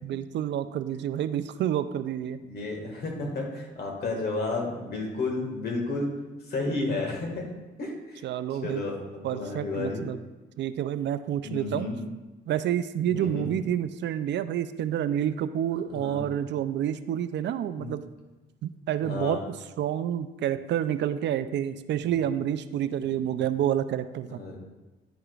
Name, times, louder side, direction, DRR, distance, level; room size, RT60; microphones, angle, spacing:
voice 1, 0.0-2.4 8.2-8.8 9.2-10.2 10.6-11.9 12.5-18.0 18.6-19.4 19.8-24.4, right 10 dB, 65° right, 12 dB, 0.4 m, -29 dB
voice 2, 2.4-6.1 6.5-7.5 7.8-8.2 8.6-9.0 9.3-10.0 11.4-12.0 13.1-13.5 15.9-16.2 17.8-17.9 19.0-19.4 24.3-24.6, left 3 dB, 55° left, 0 dB, 1.8 m, -32 dB
10.0 x 4.9 x 2.4 m, 1.1 s
cardioid pair, 90°, 20 cm